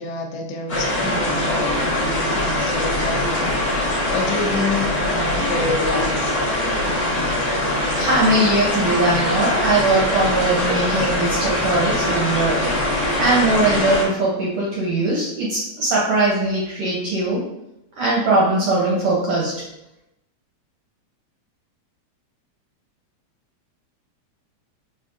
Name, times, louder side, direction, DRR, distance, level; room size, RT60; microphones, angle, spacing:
voice 1, 0.0-3.5 4.1-6.3, left 3 dB, 80° left, 2 dB, 1.5 m, -28 dB
sound 1, 0.7-14.0, left 1 dB, 45° left, 1.2 m, -22 dB
voice 2, 7.9-12.6 13.2-17.4 18.0-19.5, right 2 dB, 75° right, -5 dB, 1.3 m, -20 dB
4.9 x 2.6 x 2.5 m, 0.85 s
omnidirectional pair, 3.4 m